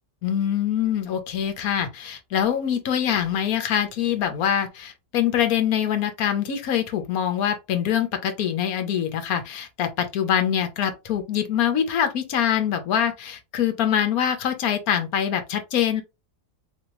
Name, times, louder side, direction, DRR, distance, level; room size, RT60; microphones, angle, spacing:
voice 1, 0.2-16.0, left 9 dB, 65° left, 1.2 m, -24 dB
4.2 x 2.8 x 3.0 m
omnidirectional pair, 1.8 m